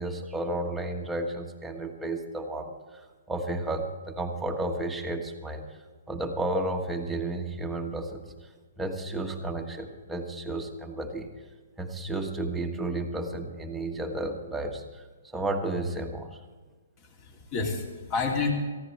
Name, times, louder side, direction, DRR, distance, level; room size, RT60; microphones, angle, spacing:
voice 1, 0.0-3.0 3.3-5.6 6.1-11.3 11.8-15.1 15.3-16.4, right 2 dB, 5° right, 1 dB, 1.4 m, -32 dB
voice 2, 17.0-18.5, left 4 dB, 30° left, 1 dB, 3.0 m, -30 dB
18.0 x 15.0 x 3.3 m, 1.4 s
hypercardioid pair, 150°, 0 cm